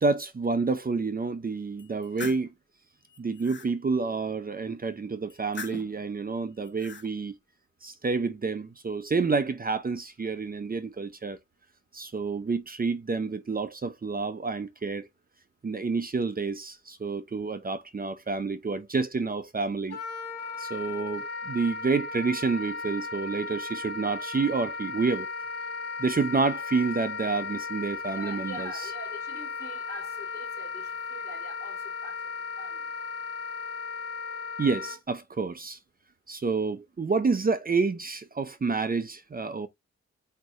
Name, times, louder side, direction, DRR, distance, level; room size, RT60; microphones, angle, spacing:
voice 1, 0.0-2.5 3.2-7.3 7.8-11.4 11.9-15.1 15.6-20.0 20.6-25.3 26.0-28.7 34.6-35.8 36.3-39.7, right 4 dB, 30° right, 0.6 m, -29 dB
sound 1, 1.8-2.5 3.1-3.7 5.3-6.0 6.6-7.1, left 5 dB, 40° left, 1.0 m, -41 dB
Wind instrument woodwind instrument, 19.9-35.0, left 4 dB, 55° left, 1.6 m, -36 dB
voice 2, 28.1-32.2 32.6-32.8, right 1 dB, 10° left, 2.8 m, -44 dB
4.6 x 4.5 x 2.5 m
wide cardioid pair, 125°, 29 cm